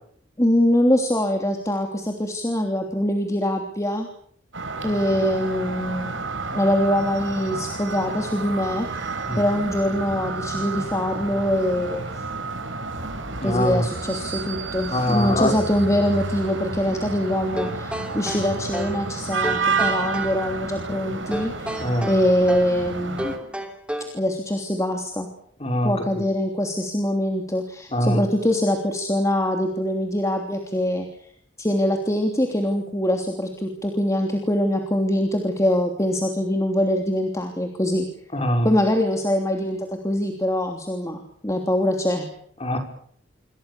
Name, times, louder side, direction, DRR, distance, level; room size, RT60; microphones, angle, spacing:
voice 1, 0.4-4.1 4.8-6.2 6.5-8.9 9.3-12.1 13.4-23.3 24.1-25.3 25.8-31.1 31.6-38.1 38.6-39.8 40.0-42.3, left 1 dB, 15° left, 3 dB, 3.1 m, -23 dB
sound 1, 4.5-23.4, right 3 dB, 75° right, 5.1 m, -30 dB
voice 2, 13.4-13.9 14.9-15.5 21.8-22.1 25.6-25.9 27.9-28.2 38.3-38.7 42.6-42.8, left 1 dB, 30° left, 4 dB, 5.9 m, -22 dB
sound 2, 17.6-19.0 19.4-20.4 21.3-22.8 23.2-24.2, equal, 5° right, 3.1 m, -31 dB
27.5 x 24.5 x 7.0 m, 0.65 s
head